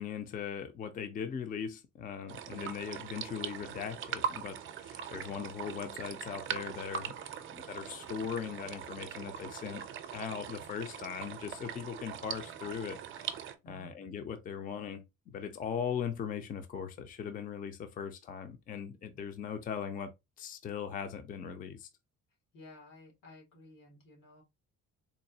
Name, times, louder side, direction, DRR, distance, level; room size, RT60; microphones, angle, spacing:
voice 1, 0.0-7.1 7.7-9.8 10.1-13.4 13.7-20.1 20.4-21.9, left 7 dB, 25° left, 0.4 m, -39 dB
sound 1, 2.3-13.6, right 8 dB, 40° right, 0.5 m, -41 dB
voice 2, 13.6-14.0 22.5-24.4, left 1 dB, 90° left, 2.1 m, -54 dB
4.0 x 2.6 x 2.7 m
cardioid pair, 170°, 32 cm